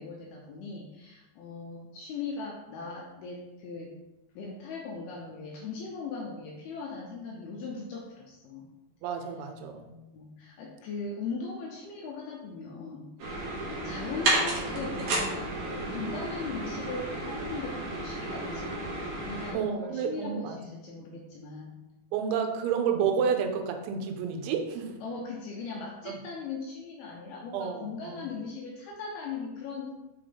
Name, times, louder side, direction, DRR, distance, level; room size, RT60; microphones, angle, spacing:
voice 1, 0.0-3.9 4.4-8.7 10.1-13.4 13.8-19.0 19.3-21.7 25.0-29.9, left 4 dB, 85° left, -1 dB, 2.2 m, -39 dB
voice 2, 9.0-9.9 19.5-20.6 22.1-24.9 26.1-26.2 27.5-28.2, right 7 dB, 90° right, 5 dB, 3.1 m, -30 dB
sound 1, 13.2-19.5, right 2 dB, 60° right, 2.0 m, -32 dB
6.6 x 5.2 x 3.7 m, 1.0 s
omnidirectional pair, 5.2 m